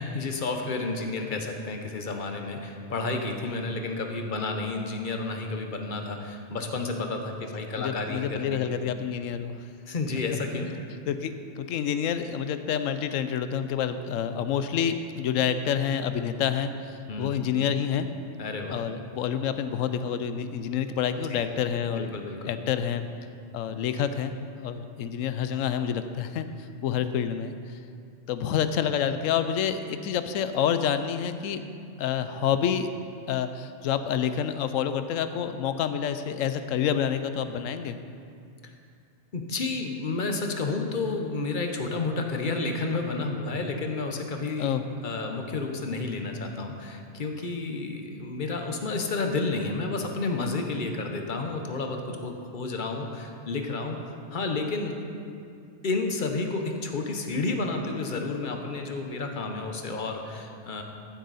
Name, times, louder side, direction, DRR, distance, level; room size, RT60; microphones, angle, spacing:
voice 1, 0.0-8.6 9.9-10.7 17.1-17.3 18.4-18.8 21.3-21.4 21.9-22.4 23.7-23.8 38.6-38.7 39.3-44.7 45.0-55.0 55.8-60.8, left 3 dB, 40° left, 4 dB, 1.0 m, -31 dB
voice 2, 7.8-9.5 11.1-18.1 18.7-22.1 22.4-23.0 23.5-26.5 26.8-27.8 28.3-31.6 32.0-32.9 33.3-38.0 44.6-44.8, left 8 dB, 80° left, 10 dB, 1.0 m, -28 dB
14.0 x 7.8 x 4.1 m, 2.4 s
omnidirectional pair, 1.4 m